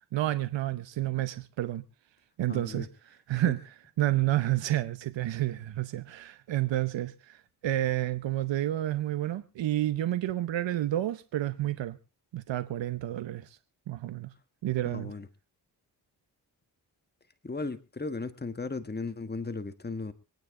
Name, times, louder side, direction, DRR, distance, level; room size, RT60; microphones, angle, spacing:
voice 1, 0.1-1.8 2.4-2.9 3.3-3.6 4.0-12.0 12.3-13.6 13.9-14.3 14.6-15.1, right 14 dB, 90° right, 0.8 m, -30 dB
voice 2, 2.5-2.9 3.3-3.5 14.8-15.3 17.4-20.1, left 3 dB, 25° left, 1.5 m, -36 dB
25.0 x 9.3 x 3.7 m
cardioid pair, 50°, 43 cm